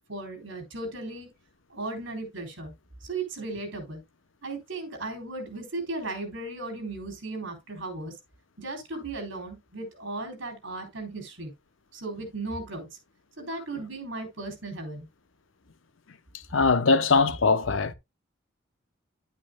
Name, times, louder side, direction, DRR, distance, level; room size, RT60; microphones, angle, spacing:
voice 1, 0.1-1.3 1.7-2.7 3.0-4.0 4.4-8.1 8.6-11.5 11.9-12.9 13.4-15.1, right 2 dB, 65° right, 3.9 m, -36 dB
voice 2, 16.5-17.9, left 4 dB, 75° left, 0.7 m, -21 dB
10.5 x 8.6 x 2.2 m
head